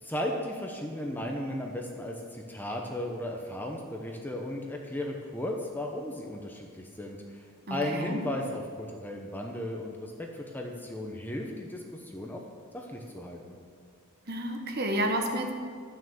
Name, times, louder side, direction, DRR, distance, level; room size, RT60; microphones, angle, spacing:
voice 1, 0.0-12.4 12.7-13.6, left 1 dB, 10° left, 1 dB, 0.8 m, -35 dB
voice 2, 7.7-8.2 14.3-15.5, right 1 dB, 45° right, 3 dB, 1.3 m, -30 dB
11.5 x 6.4 x 7.1 m, 2.1 s
head